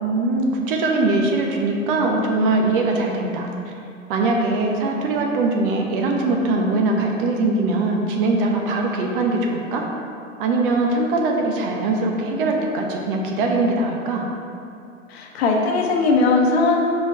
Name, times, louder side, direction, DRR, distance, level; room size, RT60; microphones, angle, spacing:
voice 1, 0.0-3.5 4.1-9.9 10.4-14.2, right 2 dB, 40° right, 1 dB, 0.9 m, -21 dB
voice 2, 15.1-16.8, left 3 dB, 50° left, 0 dB, 1.1 m, -19 dB
5.7 x 4.5 x 4.6 m, 2.5 s
figure-of-eight pair, 110°, 41 cm